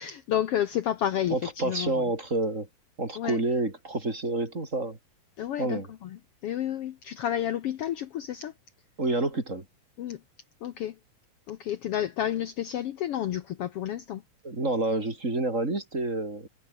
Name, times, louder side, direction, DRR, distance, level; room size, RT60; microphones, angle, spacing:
voice 1, 0.0-1.9 3.2-3.4 5.4-6.1 6.4-8.5 10.0-10.2 10.6-11.0 11.5-14.2, left 11 dB, 65° left, 1.7 m, -30 dB
voice 2, 1.3-2.7 3.0-5.0 5.6-5.9 9.0-9.7 14.4-16.5, right 2 dB, 25° right, 4.0 m, -28 dB
omnidirectional pair, 3.3 m